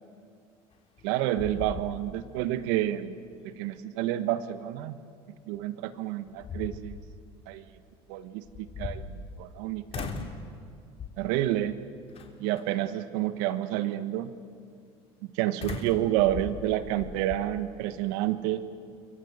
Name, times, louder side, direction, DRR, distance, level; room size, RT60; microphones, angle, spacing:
sound 1, 0.7-1.1 1.4-2.4 2.8-2.9 5.5-5.6 6.2-7.1 8.4-9.6 9.9-10.4 11.0-11.4 12.1-12.6 15.6-17.4, left 5 dB, 50° left, 3.3 m, -39 dB
voice 1, 1.0-3.2 3.4-5.0 5.5-7.0 7.5-7.6 8.1-10.1 11.2-11.8 12.4-14.3 15.2-18.6, right 13 dB, 80° right, 12 dB, 1.3 m, -29 dB
29.0 x 23.0 x 8.1 m, 2.3 s
supercardioid pair, 80°, 13 cm